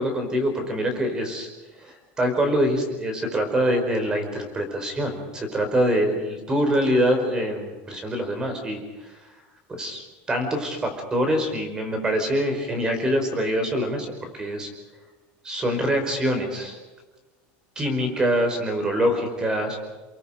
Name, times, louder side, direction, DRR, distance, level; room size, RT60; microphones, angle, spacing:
voice 1, 0.0-1.5 1.8-8.8 9.7-14.7 15.4-16.8 17.7-19.8, equal, 15° right, 6 dB, 5.1 m, -24 dB
30.0 x 23.0 x 5.2 m, 1.2 s
cardioid pair, 170°, 5 cm